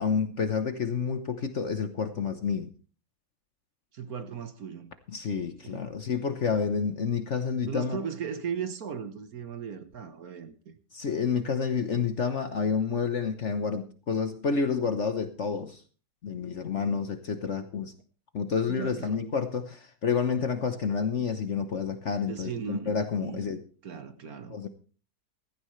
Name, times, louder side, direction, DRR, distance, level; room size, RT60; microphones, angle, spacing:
voice 1, 0.0-2.7 5.1-8.0 10.9-15.8 16.2-17.9 18.3-23.6 24.5-24.7, left 5 dB, 50° left, 1.1 m, -29 dB
voice 2, 3.9-4.9 5.4-5.9 7.7-10.7 18.7-19.2 22.3-23.4 23.8-24.7, right 7 dB, 55° right, 1.5 m, -37 dB
16.0 x 15.0 x 3.2 m
omnidirectional pair, 2.0 m